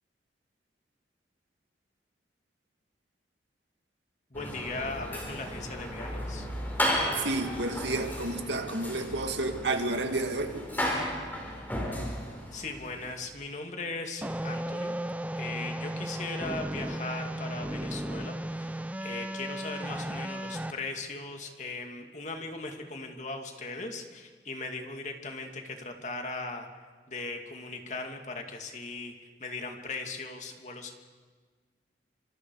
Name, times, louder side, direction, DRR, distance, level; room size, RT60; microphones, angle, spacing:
voice 1, 4.3-6.5 12.5-14.9 15.3-26.7 27.1-29.1 29.4-30.9, left 3 dB, 40° left, 3 dB, 2.6 m, -38 dB
sound 1, 4.3-13.2, equal, 10° left, 4.9 m, -34 dB
voice 2, 7.2-10.7, right 2 dB, 85° right, 5 dB, 2.2 m, -31 dB
sound 2, 14.2-20.7, right 1 dB, 10° right, 0.7 m, -35 dB
29.5 x 27.0 x 4.9 m, 1.4 s
head